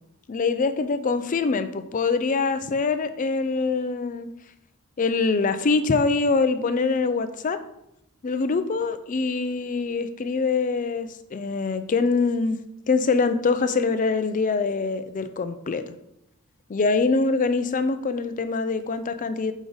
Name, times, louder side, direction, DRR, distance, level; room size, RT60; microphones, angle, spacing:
voice 1, 0.3-4.3 5.0-7.6 8.2-12.6 12.9-15.9 16.7-19.5, left 4 dB, 35° left, 10 dB, 0.4 m, -24 dB
6.2 x 5.1 x 3.9 m, 0.80 s
head